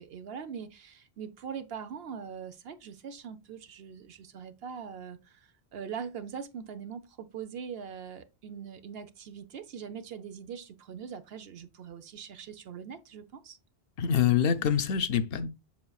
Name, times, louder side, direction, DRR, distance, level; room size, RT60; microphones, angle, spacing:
voice 1, 0.0-13.6, right 7 dB, 70° right, 1.0 m, -42 dB
voice 2, 14.0-15.5, left 8 dB, 70° left, 0.8 m, -25 dB
7.4 x 5.9 x 2.3 m
omnidirectional pair, 1.1 m